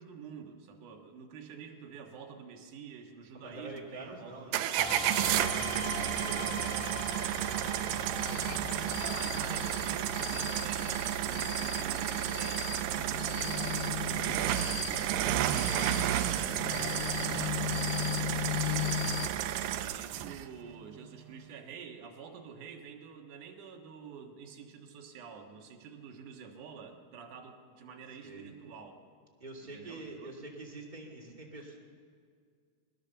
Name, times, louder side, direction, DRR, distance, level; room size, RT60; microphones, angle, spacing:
voice 1, 0.0-5.0 9.0-15.1 17.2-17.7 19.7-29.0 29.7-30.5, right 6 dB, 60° right, 2 dB, 2.6 m, -48 dB
voice 2, 3.3-6.8 28.2-28.5 29.4-31.8, right 2 dB, 15° right, -2 dB, 1.8 m, -46 dB
sound 1, 4.5-20.5, right 12 dB, 85° right, 1.9 m, -32 dB
sound 2, 4.8-10.6, left 4 dB, 60° left, 2.7 m, -41 dB
sound 3, 8.2-19.3, left 14 dB, 80° left, 2.5 m, -38 dB
21.5 x 19.0 x 6.9 m, 2.1 s
omnidirectional pair, 4.8 m